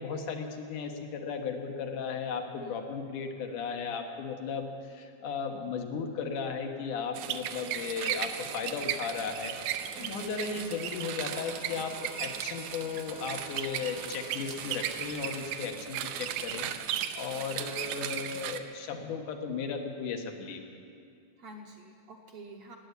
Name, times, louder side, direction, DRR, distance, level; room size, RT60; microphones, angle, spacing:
voice 1, 0.0-9.6 10.0-16.7 17.2-20.8, left 5 dB, 90° left, 4 dB, 2.8 m, -36 dB
sound 1, 7.2-18.6, right 10 dB, 85° right, 2.2 m, -36 dB
sound 2, 9.2-15.6, left 6 dB, 70° left, 2.7 m, -51 dB
voice 2, 10.0-10.3 21.4-22.8, right 2 dB, 65° right, 2 dB, 1.6 m, -47 dB
17.5 x 8.1 x 9.6 m, 2.4 s
omnidirectional pair, 3.6 m